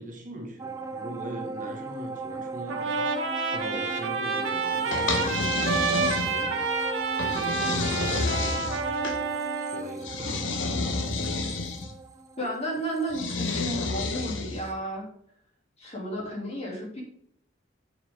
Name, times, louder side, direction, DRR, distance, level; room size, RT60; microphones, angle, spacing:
voice 1, 0.0-6.6 7.1-8.8 9.6-10.9, right 1 dB, 40° right, 1 dB, 1.5 m, -41 dB
sound 1, 0.6-14.3 14.7-14.8, right 4 dB, 15° right, 0.4 m, -38 dB
Trumpet, 2.7-9.8, right 4 dB, 90° right, 1.7 m, -29 dB
sound 2, 4.9-6.6 7.2-9.2 10.0-11.9 13.1-14.7, left 3 dB, 75° left, 1.0 m, -30 dB
voice 2, 12.4-15.1 15.8-17.0, right 1 dB, 30° left, -3 dB, 2.9 m, -32 dB
8.6 x 6.7 x 3.7 m, 0.69 s
head